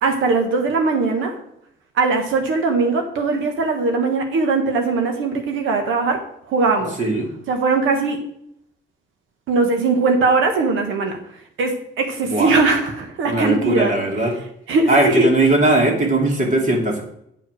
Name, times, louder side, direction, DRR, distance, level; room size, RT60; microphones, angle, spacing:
voice 1, 0.0-1.3 2.0-6.2 6.5-6.9 7.5-8.2 9.5-11.2 11.6-13.9 14.7-15.3, right 3 dB, 80° right, 4 dB, 1.4 m, -20 dB
voice 2, 7.0-7.3 12.2-12.5 13.3-14.4 14.9-17.0, right 2 dB, 40° right, 1 dB, 2.6 m, -18 dB
8.7 x 4.8 x 6.2 m, 0.72 s
cardioid pair, 90°, 20 cm